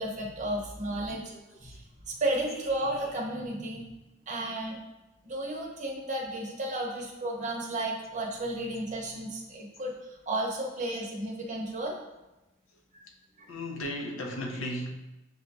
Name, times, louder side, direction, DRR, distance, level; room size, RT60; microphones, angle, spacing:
voice 1, 0.0-1.2 1.6-3.9 4.3-4.8 5.2-9.9 10.3-12.0 12.9-13.0 13.4-13.5, right 1 dB, 35° right, -1 dB, 0.7 m, -33 dB
voice 2, 0.9-1.4 1.7-1.8 12.7-12.8 13.5-14.9, left 1 dB, 80° left, 1 dB, 0.7 m, -36 dB
7.3 x 2.6 x 2.3 m, 1.0 s
head